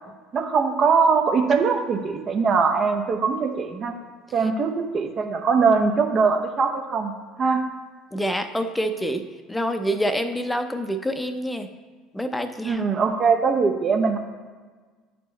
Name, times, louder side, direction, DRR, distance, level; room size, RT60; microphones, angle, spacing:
voice 1, 0.3-3.9 4.3-7.1 7.4-7.6 12.6-14.2, right 5 dB, 45° right, 4 dB, 0.9 m, -21 dB
voice 2, 8.1-9.2 9.5-11.7 12.1-12.8, equal, 10° left, 8 dB, 0.7 m, -26 dB
9.7 x 4.4 x 3.2 m, 1.4 s
figure-of-eight pair, 65°, 0 cm